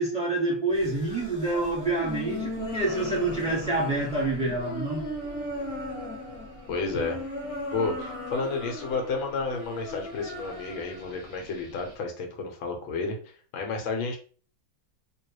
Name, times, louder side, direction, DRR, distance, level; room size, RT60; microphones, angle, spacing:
voice 1, 0.0-5.0, right 2 dB, 5° right, 1.4 m, -27 dB
sound 1, 0.7-11.9, left 1 dB, 20° left, 1.1 m, -37 dB
voice 2, 6.7-7.2 7.7-14.2, left 3 dB, 90° left, 1.7 m, -31 dB
3.6 x 3.0 x 3.1 m
omnidirectional pair, 2.1 m